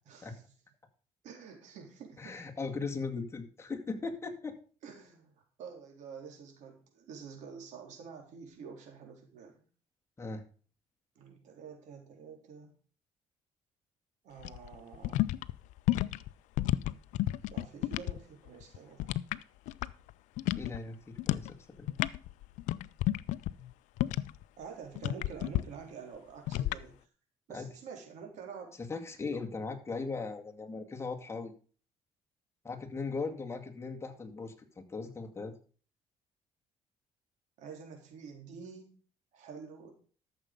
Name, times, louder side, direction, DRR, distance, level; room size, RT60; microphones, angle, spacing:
voice 1, 0.1-0.4 1.2-2.4 4.8-9.5 11.2-12.7 14.2-15.3 17.5-19.1 24.6-27.0 27.5-28.7 37.6-38.9 39.3-39.9, right 6 dB, 75° right, 3 dB, 3.7 m, -48 dB
voice 2, 2.2-4.6 10.2-10.4 20.5-21.9 27.5-27.7 28.8-31.5 32.6-35.5, left 4 dB, 20° left, 2 dB, 2.2 m, -38 dB
sound 1, 14.4-18.2 18.5-20.1 20.4-20.8 21.2-21.5 21.8-24.4 25.0-25.6 26.5-26.8, left 15 dB, 90° left, 0.5 m, -31 dB
13.0 x 7.0 x 5.3 m, 0.40 s
cardioid pair, 110°, 12 cm